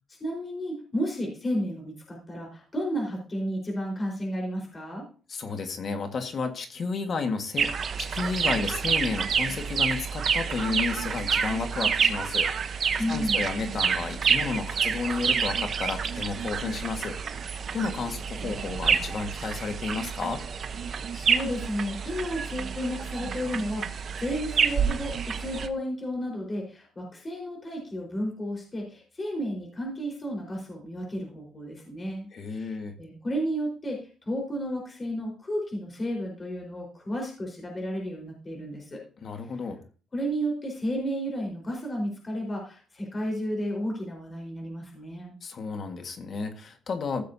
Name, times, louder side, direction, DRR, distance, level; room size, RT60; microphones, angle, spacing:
voice 1, 0.1-5.0 13.0-13.4 21.1-34.0 34.3-39.0 40.1-45.3, equal, 30° left, -1 dB, 4.5 m, -32 dB
voice 2, 5.3-7.7 8.0-17.2 17.7-20.4 32.3-32.9 39.2-39.8 45.4-47.2, left 4 dB, 50° left, 6 dB, 1.7 m, -32 dB
sound 1, 7.6-25.7, right 6 dB, 55° right, 0.9 m, -28 dB
15.5 x 7.4 x 2.8 m, 0.38 s
cardioid pair, 90°, 0 cm